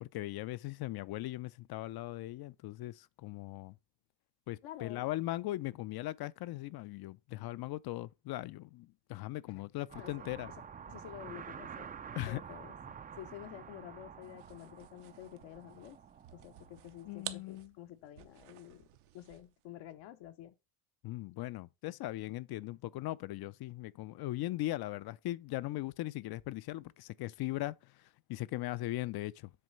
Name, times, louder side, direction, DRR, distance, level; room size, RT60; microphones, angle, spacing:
voice 1, 0.0-3.8 4.5-10.5 12.2-12.4 17.0-17.7 21.0-29.5, left 16 dB, 55° left, 0.5 m, -39 dB
voice 2, 4.6-5.0 9.5-9.6 9.9-10.3 10.9-11.9 12.3-12.7 13.2-16.0 16.3-18.9 19.1-20.5, left 13 dB, 70° left, 0.9 m, -50 dB
sound 1, 9.9-17.4, right 7 dB, 20° right, 0.3 m, -49 dB
sound 2, 14.2-19.6, right 14 dB, 80° right, 0.9 m, -51 dB
7.7 x 3.1 x 5.3 m
supercardioid pair, 80°, 48 cm